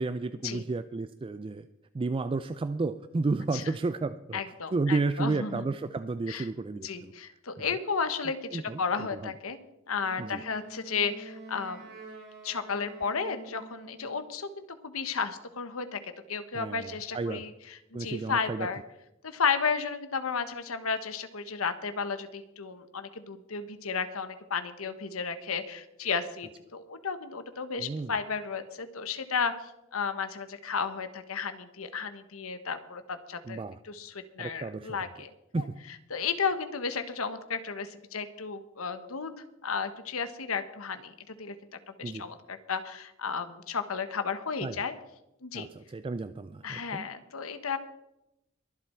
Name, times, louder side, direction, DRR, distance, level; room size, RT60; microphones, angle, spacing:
voice 1, 0.0-1.7 1.9-4.4 4.7-7.1 7.6-7.7 8.5-9.3 10.2-10.4 16.5-17.4 17.9-18.7 27.8-28.1 33.5-33.8 34.4-35.0 35.5-35.7 42.0-42.3 44.6-44.8 45.5-47.1, right 3 dB, 25° right, 12 dB, 0.3 m, -32 dB
voice 2, 4.3-5.6 6.3-6.5 6.8-9.6 9.9-11.9 12.4-18.8 19.2-29.5 29.9-35.3 35.6-41.6 42.0-44.9 45.4-45.7 46.6-47.8, left 5 dB, 80° left, 10 dB, 1.1 m, -33 dB
Wind instrument woodwind instrument, 10.0-14.2, right 3 dB, 55° right, 3.9 m, -47 dB
23.0 x 7.8 x 4.4 m, 0.88 s
head